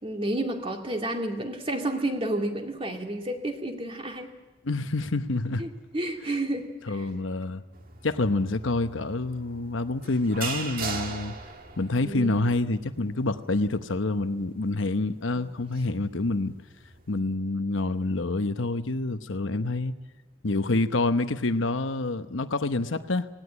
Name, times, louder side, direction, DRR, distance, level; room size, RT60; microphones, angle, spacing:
voice 1, 0.0-4.3 5.6-7.1 12.0-12.4 15.4-15.5, right 1 dB, 30° right, 2.3 m, -31 dB
voice 2, 4.6-5.6 6.9-7.6 8.0-11.3 11.8-16.5 17.1-19.9 20.4-23.3, left 2 dB, 70° left, 1.0 m, -27 dB
sound 1, 7.7-17.1, right 5 dB, 45° right, 2.0 m, -40 dB
18.0 x 18.0 x 9.8 m
head